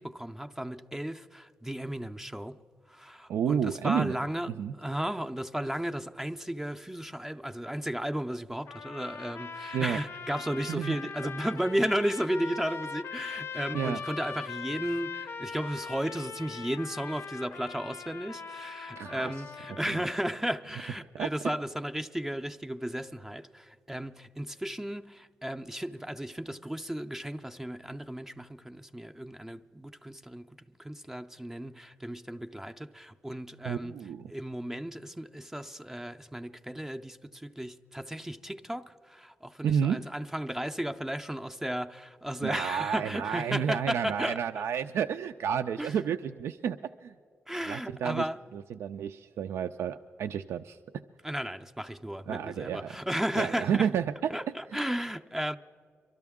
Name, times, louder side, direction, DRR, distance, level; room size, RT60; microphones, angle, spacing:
voice 1, 0.0-2.6 2.9-4.5 4.8-34.0 34.3-44.4 45.8-46.0 47.5-48.4 51.2-53.9 54.3-55.6, equal, 10° right, 0.4 m, -34 dB
voice 2, 3.3-4.2 4.6-4.7 9.7-10.0 10.7-11.0 13.7-14.0 19.0-19.3 19.9-20.0 21.1-21.3 33.7-34.3 39.6-40.0 42.4-47.1 47.7-48.2 48.5-50.8 52.3-52.9 53.3-54.3, right 8 dB, 90° right, 0.3 m, -31 dB
sound 1, 8.7-20.2, left 6 dB, 70° left, 0.5 m, -41 dB
24.0 x 13.0 x 3.6 m
wide cardioid pair, 120°, 4 cm